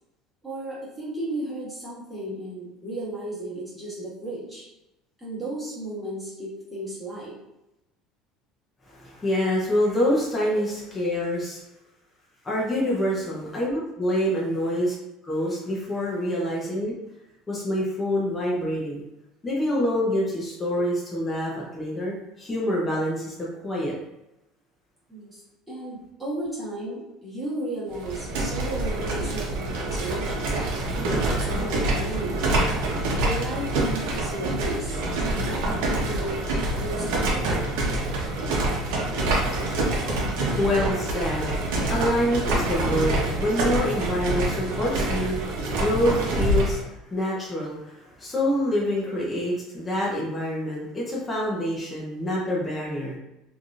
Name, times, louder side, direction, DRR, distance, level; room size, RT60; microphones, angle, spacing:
voice 1, 0.4-4.6 5.2-7.4 25.1-30.5 31.0-32.4 33.1-36.4 36.8-37.6 42.6-42.9 44.2-44.3 48.9-49.3, right 1 dB, 5° right, -10 dB, 1.5 m, -34 dB
voice 2, 8.9-11.6 12.4-14.9 15.2-16.9 17.5-19.0 19.4-23.9 40.3-45.4 45.7-46.8 47.1-53.2, left 1 dB, 15° left, -6 dB, 0.6 m, -26 dB
sound 1, 27.9-46.8, right 2 dB, 80° right, 0.8 m, -26 dB
3.3 x 2.6 x 2.4 m, 0.91 s
cardioid pair, 155°, 0 cm